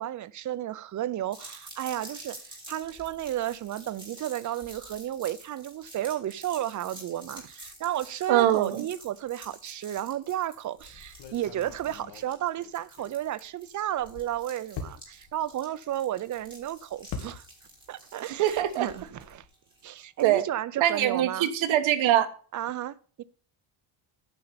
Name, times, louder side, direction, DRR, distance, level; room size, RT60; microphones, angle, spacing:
voice 1, 0.0-17.5 17.9-19.4 19.8-21.5 22.5-23.2, right 12 dB, 40° right, 0.5 m, -33 dB
sound 1, 1.3-20.3, right 1 dB, 10° right, 4.2 m, -49 dB
voice 2, 8.3-8.8 18.4-18.9 20.2-20.4 20.8-22.3, right 12 dB, 65° right, 1.3 m, -23 dB
sound 2, 10.8-13.5 13.8-17.9 18.2-19.5, left 5 dB, 60° left, 2.0 m, -44 dB
9.9 x 5.4 x 6.9 m
cardioid pair, 140°, 50 cm